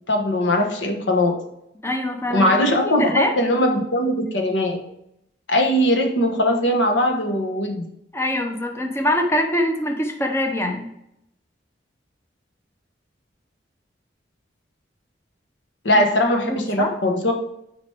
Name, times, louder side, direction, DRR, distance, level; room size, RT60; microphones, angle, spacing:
voice 1, 0.1-1.4 2.3-4.8 5.5-7.8 15.8-17.3, left 1 dB, 80° left, 3 dB, 1.3 m, -20 dB
voice 2, 1.8-3.3 8.1-10.9 16.5-16.9, left 1 dB, 15° left, 4 dB, 0.7 m, -24 dB
8.8 x 5.0 x 3.4 m, 0.79 s
head